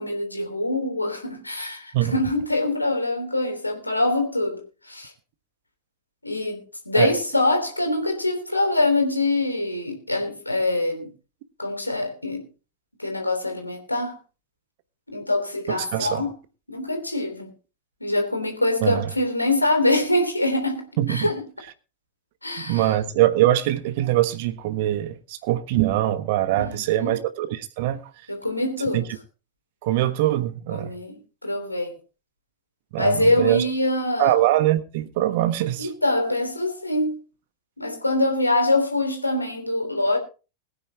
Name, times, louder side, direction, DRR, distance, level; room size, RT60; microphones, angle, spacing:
voice 1, 0.0-5.1 6.2-11.1 11.6-12.4 13.0-14.2 15.1-16.3 16.7-17.5 18.0-21.4 22.4-22.9 26.6-27.2 28.3-29.0 30.7-31.1 31.4-31.9 33.0-34.3 35.8-37.2 37.8-40.2, left 2 dB, 85° left, 3.3 m, -24 dB
voice 2, 15.7-16.3 18.8-19.1 21.0-21.3 22.6-28.3 28.9-29.0 29.8-30.9 32.9-33.6 34.2-35.9, right 14 dB, 50° right, 1.3 m, -23 dB
21.5 x 9.6 x 2.9 m
figure-of-eight pair, 90°, 0 cm